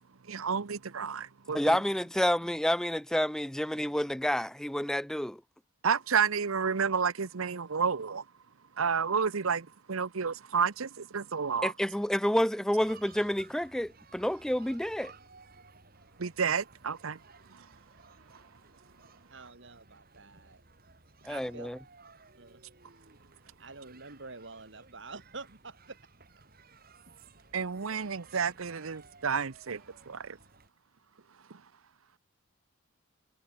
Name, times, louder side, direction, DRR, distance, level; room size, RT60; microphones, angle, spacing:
voice 1, 0.3-1.8 5.8-8.2 8.8-11.7 16.2-17.2 17.5-17.6 27.5-30.4 31.5-31.6, right 6 dB, 85° right, 0.8 m, -31 dB
voice 2, 1.5-5.4 11.6-15.1 21.3-21.8, equal, 5° left, 0.4 m, -29 dB
sound 1, 12.8-30.7, right 4 dB, 45° right, 3.2 m, -57 dB
voice 3, 19.3-20.6 21.3-21.7 22.4-22.6 23.6-26.0, right 3 dB, 60° right, 2.1 m, -47 dB
head